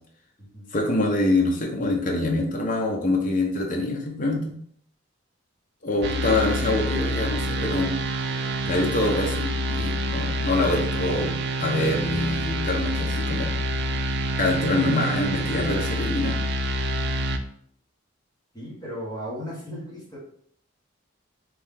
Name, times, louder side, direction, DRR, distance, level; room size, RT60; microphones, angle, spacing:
voice 1, 0.7-4.5 5.8-7.9 8.6-11.3 11.6-13.5 14.4-16.4, left 2 dB, 40° left, 0 dB, 0.6 m, -25 dB
sound 1, 6.0-17.4, right 1 dB, 50° right, 0.3 m, -27 dB
voice 2, 6.1-6.5 18.5-20.2, equal, 20° left, -8 dB, 1.4 m, -36 dB
3.1 x 2.7 x 3.5 m, 0.63 s
head